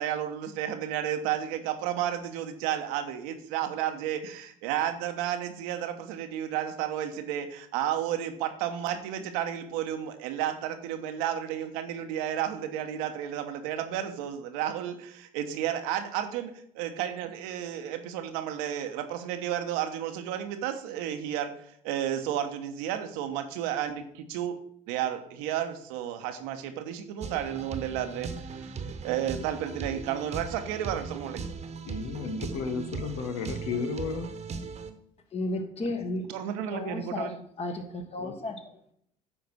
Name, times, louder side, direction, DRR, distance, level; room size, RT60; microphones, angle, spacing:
voice 1, 0.0-21.5 21.8-24.6 24.9-31.4 36.3-37.4, right 10 dB, 80° right, 7 dB, 1.1 m, -32 dB
sound 1, 27.2-34.9, right 5 dB, 40° right, 1.2 m, -38 dB
voice 2, 31.9-34.3, left 4 dB, 80° left, 8 dB, 1.2 m, -33 dB
voice 3, 35.3-36.2 36.7-37.3 37.6-38.5, left 2 dB, 40° left, 6 dB, 1.7 m, -33 dB
10.0 x 4.0 x 6.2 m, 0.67 s
supercardioid pair, 75°, 17 cm